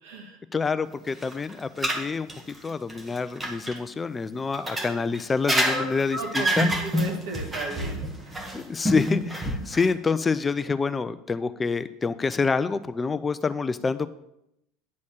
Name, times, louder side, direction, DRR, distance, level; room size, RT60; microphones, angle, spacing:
voice 1, 0.0-0.4 4.6-4.9 5.7-5.8 6.1-8.4, right 2 dB, 65° right, 2 dB, 1.9 m, -35 dB
voice 2, 0.5-2.3 2.6-6.7 8.5-14.1, left 4 dB, 20° left, 13 dB, 0.4 m, -27 dB
sound 1, 1.1-3.8 4.5-9.9, equal, 15° right, 1.7 m, -27 dB
9.6 x 4.2 x 7.2 m, 0.82 s
figure-of-eight pair, 70°, 0 cm